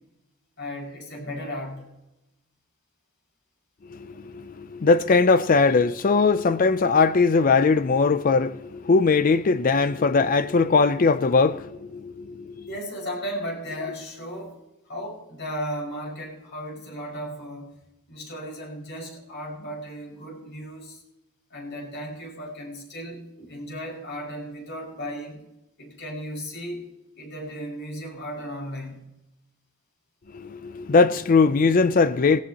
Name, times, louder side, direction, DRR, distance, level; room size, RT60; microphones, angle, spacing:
voice 1, 0.6-1.9 12.7-14.6 14.9-17.7 18.1-21.0 21.5-25.4 25.8-26.9 27.2-29.0, equal, 55° left, 5.6 m, -35 dB
voice 2, 3.9-12.7 30.3-32.4, left 4 dB, 40° left, 0.4 m, -20 dB
19.5 x 17.0 x 2.9 m
head